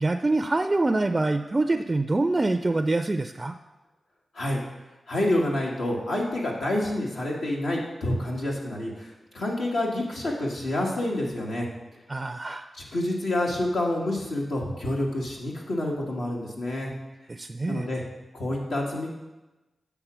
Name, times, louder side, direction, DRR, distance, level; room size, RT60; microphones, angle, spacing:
voice 1, 0.0-3.5 12.1-12.7 17.3-17.9, right 2 dB, 35° right, 8 dB, 0.3 m, -25 dB
voice 2, 5.1-11.7 12.7-16.9 17.7-18.0 18.3-19.1, left 1 dB, 85° left, -3 dB, 1.5 m, -28 dB
8.0 x 3.6 x 6.0 m, 1.1 s
cardioid pair, 45°, 0 cm